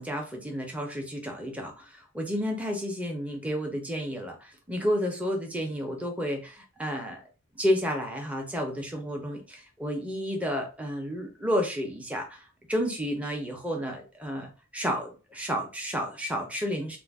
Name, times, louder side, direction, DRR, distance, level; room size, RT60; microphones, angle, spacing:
voice 1, 0.0-7.2 7.6-17.0, equal, 5° right, 2 dB, 0.5 m, -31 dB
2.4 x 2.0 x 3.4 m, 0.34 s
head